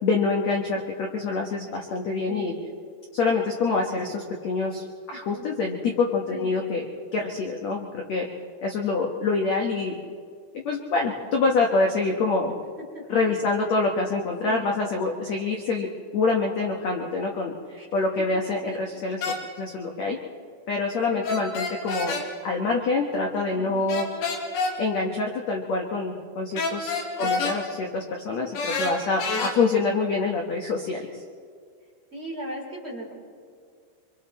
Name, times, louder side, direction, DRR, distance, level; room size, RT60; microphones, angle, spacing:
voice 1, 0.0-2.5 3.1-6.9 7.1-8.3 8.6-9.9 10.5-12.5 13.1-15.9 16.1-19.2 19.6-20.2 20.7-22.1 22.4-24.1 24.8-31.1, left 3 dB, 85° left, 1 dB, 1.5 m, -26 dB
voice 2, 2.3-2.6 5.1-5.5 6.3-6.5 12.9-13.4 14.4-14.8 17.7-17.9 18.7-19.0 21.1-21.5 23.5-23.8 27.2-27.5 32.1-33.1, right 1 dB, 15° right, -3 dB, 2.4 m, -38 dB
sound 1, 19.2-19.4 21.2-22.3 23.9-24.7 26.6-27.6 28.5-29.5, left 4 dB, 65° left, 3.9 m, -27 dB
25.5 x 24.5 x 4.3 m, 2.1 s
omnidirectional pair, 5.2 m